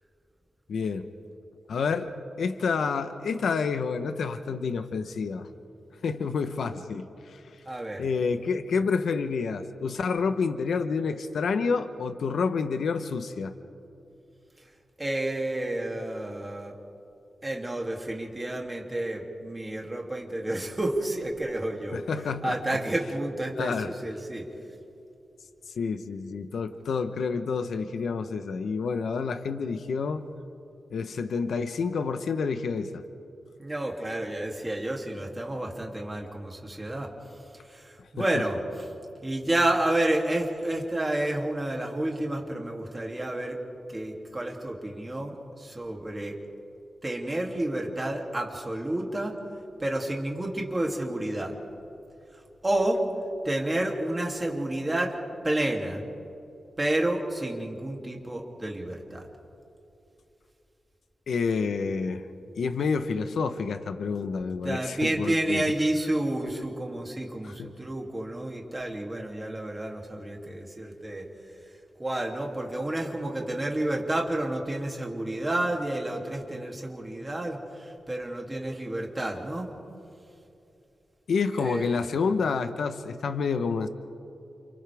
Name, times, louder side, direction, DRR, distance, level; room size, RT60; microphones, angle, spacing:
voice 1, 0.7-1.1 1.7-2.1 2.4-5.5 6.0-7.6 8.0-13.5 21.9-22.8 23.6-23.9 25.8-30.2 30.9-33.0 38.2-38.4 61.3-62.2 62.5-65.6 67.4-67.7 81.3-83.9, left 5 dB, 80° left, 9 dB, 1.0 m, -29 dB
voice 2, 7.7-8.0 15.0-16.8 17.4-22.0 22.4-24.5 33.6-37.1 37.7-38.6 39.2-43.6 43.9-46.4 47.0-49.4 49.8-51.5 52.6-53.0 53.4-55.1 55.4-56.0 56.8-59.3 64.6-71.3 72.0-79.7 81.6-82.0, right 1 dB, 15° right, 0 dB, 2.8 m, -30 dB
29.5 x 29.0 x 3.5 m, 2.8 s
wide cardioid pair, 135°, 0 cm